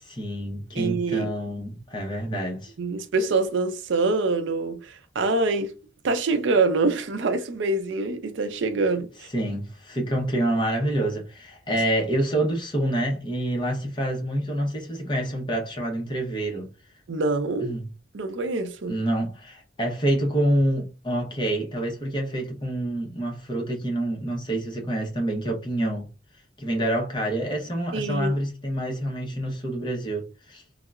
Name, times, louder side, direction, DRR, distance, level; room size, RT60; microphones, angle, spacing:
voice 1, 0.1-2.7 9.3-16.7 17.6-17.9 18.9-26.1 26.6-30.6, right 1 dB, 25° left, 0.7 m, -27 dB
voice 2, 0.7-1.3 2.8-5.7 6.0-9.1 17.1-17.7 18.1-19.0 27.9-28.3, right 3 dB, 75° right, 0.5 m, -25 dB
3.6 x 2.0 x 2.3 m
head